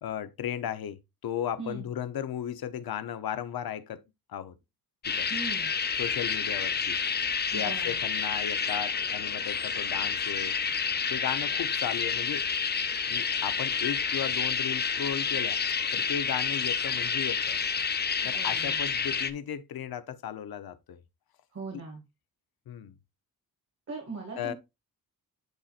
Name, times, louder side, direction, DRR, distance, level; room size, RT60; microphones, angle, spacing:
voice 1, 0.0-4.0 4.3-4.5 5.1-5.3 6.0-7.0 7.5-10.6 11.1-12.5 13.1-15.6 15.9-17.6 18.2-21.0 21.7-21.8 22.7-22.9 24.4-24.5, left 9 dB, 85° left, 1.0 m, -35 dB
voice 2, 1.6-1.9 5.3-5.7 7.5-8.0 18.2-18.8 21.5-22.0 23.9-24.5, right 4 dB, 45° right, 2.3 m, -40 dB
sound 1, 5.0-19.3, left 6 dB, 30° left, 0.6 m, -29 dB
10.5 x 4.3 x 2.5 m
wide cardioid pair, 165°, 35 cm